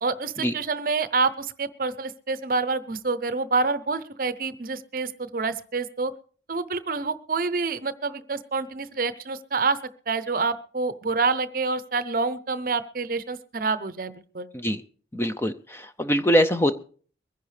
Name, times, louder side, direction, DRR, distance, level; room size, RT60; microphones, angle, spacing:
voice 1, 0.0-6.1 6.5-9.8 10.1-14.5, right 4 dB, 50° right, 13 dB, 0.7 m, -27 dB
voice 2, 15.1-16.8, equal, 15° left, 10 dB, 0.5 m, -23 dB
23.0 x 10.5 x 3.3 m, 0.43 s
head